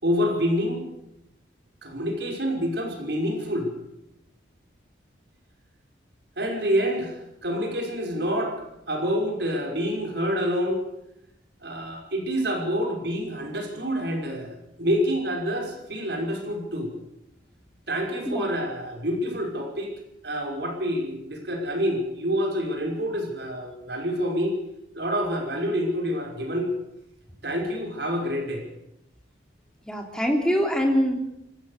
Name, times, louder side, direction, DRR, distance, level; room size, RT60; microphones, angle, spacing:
voice 1, 0.0-0.9 1.8-3.7 6.4-8.6 8.9-10.8 11.6-16.9 17.9-19.9 20.2-24.5 24.9-26.7 27.4-28.6, equal, 65° right, 1 dB, 5.9 m, -27 dB
voice 2, 29.9-31.2, equal, 5° left, 2 dB, 3.5 m, -23 dB
25.0 x 16.5 x 6.9 m, 0.83 s
head